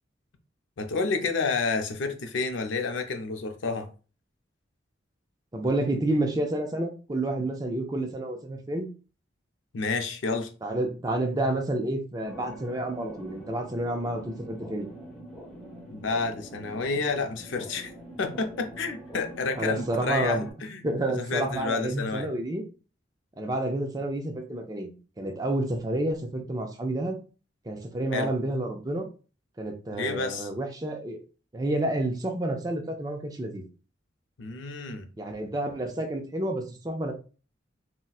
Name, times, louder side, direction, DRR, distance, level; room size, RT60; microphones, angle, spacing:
voice 1, 0.8-3.9 9.7-10.5 15.9-17.9 18.2-20.8 21.2-22.3 28.1-28.3 30.0-30.5 34.4-35.1, left 4 dB, 80° left, 0.5 m, -30 dB
voice 2, 5.5-8.9 10.6-14.9 19.6-20.5 20.8-22.6 23.4-27.2 27.6-29.1 29.6-31.2 31.5-33.7 35.2-37.1, right 1 dB, 20° right, 0.4 m, -29 dB
sound 1, 12.2-20.5, right 1 dB, ahead, 1.0 m, -44 dB
4.0 x 2.1 x 2.3 m
head